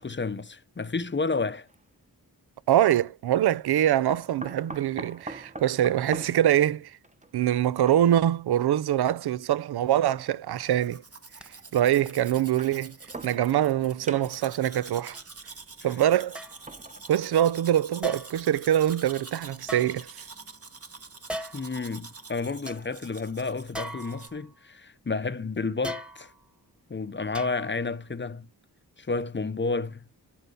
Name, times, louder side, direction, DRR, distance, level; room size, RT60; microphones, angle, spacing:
voice 1, 0.0-1.7 15.8-15.9 21.5-26.3 26.9-28.5 29.0-30.1, left 4 dB, 30° left, 0.7 m, -31 dB
sound 1, 1.7-1.8 4.1-8.4 9.3-9.4 10.6-10.7 12.4-13.8 14.1-14.6 16.4-17.8 18.3-18.4 18.8-18.9, right 2 dB, 20° right, 1.1 m, -43 dB
voice 2, 2.7-6.9 7.3-11.0 11.7-13.0 13.2-15.2 15.8-16.4 17.1-20.1, right 11 dB, 70° right, 0.5 m, -24 dB
Domestic sounds home sounds, 10.7-24.3, right 4 dB, 35° right, 1.3 m, -46 dB
sound 2, 11.4-11.5 12.0-12.3 13.0-13.1 14.0-14.1 15.1-15.2 16.3-16.7 18.0-18.5 19.6-20.5 21.3-21.8 22.2-22.3 22.7-22.8 23.7-24.6 25.8-26.5 27.3-27.9 28.3-28.4, equal, 5° right, 1.4 m, -39 dB
12.0 x 4.4 x 5.4 m
cardioid pair, 60°, 40 cm